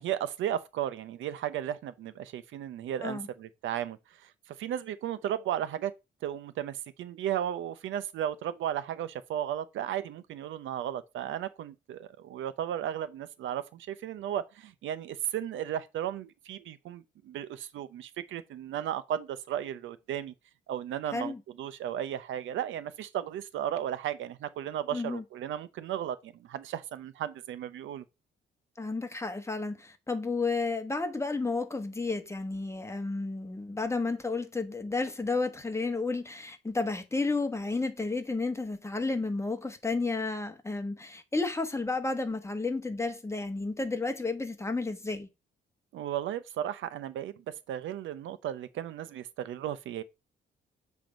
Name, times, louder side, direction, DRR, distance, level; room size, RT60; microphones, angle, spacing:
voice 1, 0.0-5.9 6.2-20.3 20.7-28.0 45.9-47.4 47.7-50.0, right 10 dB, 75° right, 0.6 m, -35 dB
voice 2, 21.1-21.4 24.9-25.2 28.8-45.3, left 3 dB, 15° left, 1.2 m, -32 dB
7.6 x 3.5 x 5.1 m
cardioid pair, 90°, 20 cm